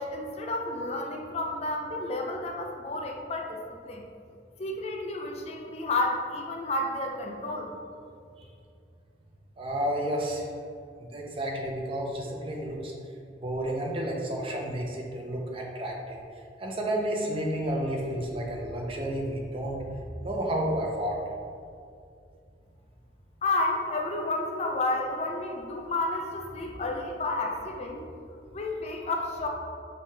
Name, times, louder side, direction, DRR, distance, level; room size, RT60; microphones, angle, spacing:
voice 1, 0.0-4.0 4.6-7.7 23.4-28.0 28.5-29.5, left 2 dB, 35° left, 2 dB, 0.4 m, -31 dB
voice 2, 9.6-10.5 11.0-12.9 13.4-16.2 16.6-19.8 20.2-21.2, right 1 dB, 30° right, 0 dB, 0.5 m, -31 dB
5.2 x 2.8 x 3.2 m, 2.4 s
head